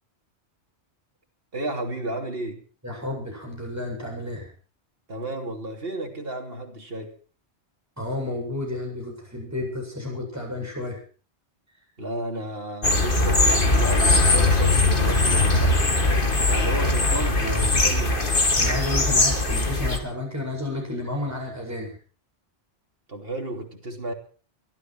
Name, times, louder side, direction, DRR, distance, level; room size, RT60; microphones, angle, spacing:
voice 1, 1.5-2.6 5.1-7.1 12.0-18.3 23.1-24.1, right 1 dB, 60° right, 3.3 m, -33 dB
voice 2, 2.8-4.5 8.0-11.0 17.2-17.7 18.6-22.0, left 2 dB, 15° right, 7.7 m, -31 dB
sound 1, 12.8-20.0, left 2 dB, 50° left, 2.4 m, -20 dB
23.0 x 13.5 x 4.6 m
omnidirectional pair, 1.1 m